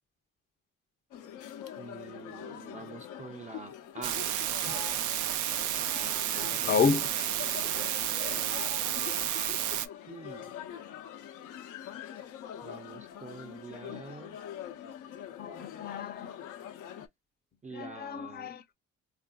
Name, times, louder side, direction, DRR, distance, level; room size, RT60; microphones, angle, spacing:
sound 1, 1.1-17.1, left 10 dB, 85° left, 0.7 m, -44 dB
voice 1, 1.8-4.3 10.1-10.5 12.6-14.4 17.6-18.7, right 4 dB, 25° right, 0.5 m, -46 dB
sound 2, 4.0-9.9, right 11 dB, 80° right, 0.5 m, -31 dB
voice 2, 6.4-7.2 13.9-14.0 15.4-16.3 17.7-18.6, left 5 dB, 30° left, 0.5 m, -31 dB
3.4 x 2.5 x 2.2 m
cardioid pair, 90°, 30 cm